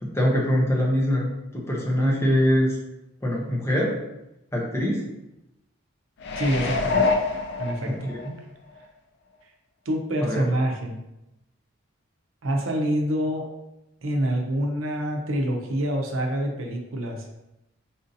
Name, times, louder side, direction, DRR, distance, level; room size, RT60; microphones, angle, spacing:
voice 1, 0.0-1.3 1.5-2.8 3.2-4.0 4.5-5.0 7.9-8.2 10.2-10.5, equal, 15° left, -3 dB, 0.6 m, -23 dB
sound 1, 6.2-8.3 8.8-8.9, left 4 dB, 55° left, 0.3 m, -25 dB
voice 2, 6.3-7.1 7.6-8.1 9.9-11.0 12.4-13.5 14.0-17.2, right 1 dB, 80° right, 2 dB, 0.6 m, -26 dB
4.1 x 2.6 x 2.6 m, 0.90 s
head